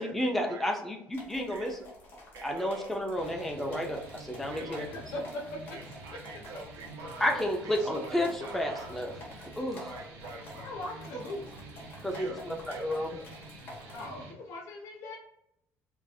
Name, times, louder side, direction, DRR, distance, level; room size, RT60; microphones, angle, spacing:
voice 1, 0.0-1.8 2.4-4.9 7.2-9.1 9.6-9.9 12.0-13.1, left 1 dB, 5° left, 0.5 m, -31 dB
sound 1, 1.1-14.1, left 1 dB, 35° left, 1.1 m, -50 dB
voice 2, 2.3-3.0 4.5-4.9 5.7-9.0 9.8-10.7 11.1-11.2 12.1-12.4 12.7-13.2, right 3 dB, 65° right, 0.9 m, -45 dB
sound 2, 3.2-14.3, right 2 dB, 85° right, 1.2 m, -48 dB
voice 3, 4.9-5.4 10.5-11.4 13.9-15.2, left 1 dB, 65° left, 1.0 m, -39 dB
5.0 x 2.4 x 2.3 m
cardioid pair, 180°, 5 cm